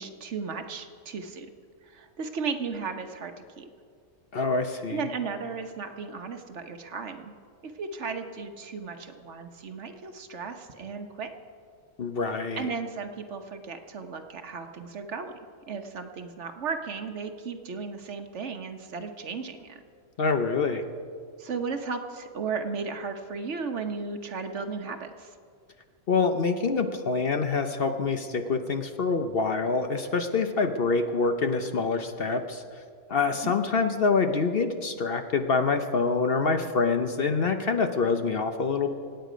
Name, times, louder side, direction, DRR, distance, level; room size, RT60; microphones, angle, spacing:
voice 1, 0.0-1.5 1.8-3.7 4.9-7.3 7.6-11.3 12.5-15.4 15.7-19.8 21.4-25.3 33.4-33.5, right 5 dB, 60° right, 6 dB, 1.2 m, -35 dB
voice 2, 4.3-5.0 12.0-12.7 20.2-20.8 26.1-32.8 33.1-38.9, left 4 dB, 50° left, 7 dB, 0.9 m, -26 dB
25.0 x 9.1 x 5.1 m, 2.1 s
omnidirectional pair, 1.4 m